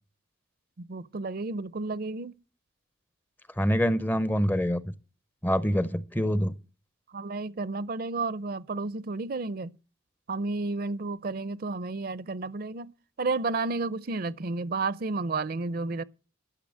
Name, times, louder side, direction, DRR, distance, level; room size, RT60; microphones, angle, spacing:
voice 1, 0.8-2.3 7.1-9.7 10.3-12.9 13.2-16.0, right 3 dB, 50° right, 0.5 m, -31 dB
voice 2, 3.6-4.8 5.4-6.5, equal, 10° left, 0.5 m, -25 dB
12.0 x 6.7 x 7.5 m
head